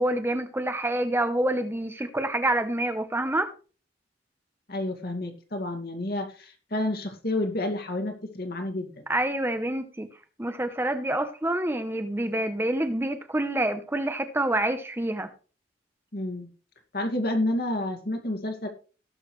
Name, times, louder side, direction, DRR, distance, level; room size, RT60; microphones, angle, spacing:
voice 1, 0.0-3.5 9.1-10.1 10.4-15.3, right 1 dB, 15° right, 0.8 m, -27 dB
voice 2, 4.7-9.1 16.1-16.5 16.9-18.7, left 1 dB, 60° left, 2.3 m, -30 dB
18.0 x 6.4 x 3.2 m
head